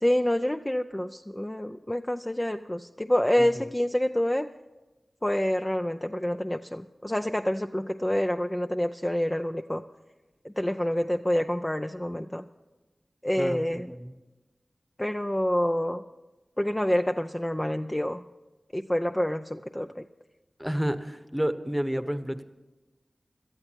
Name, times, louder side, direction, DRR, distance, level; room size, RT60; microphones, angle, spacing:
voice 1, 0.0-4.5 5.2-9.8 10.4-12.4 13.2-13.9 15.0-16.0 16.6-18.2 18.7-20.0, left 1 dB, 15° left, 6 dB, 0.5 m, -27 dB
voice 2, 13.4-14.1 20.6-22.4, equal, 5° right, 11 dB, 1.1 m, -30 dB
17.5 x 13.0 x 4.6 m, 1.1 s
wide cardioid pair, 50°, 0 cm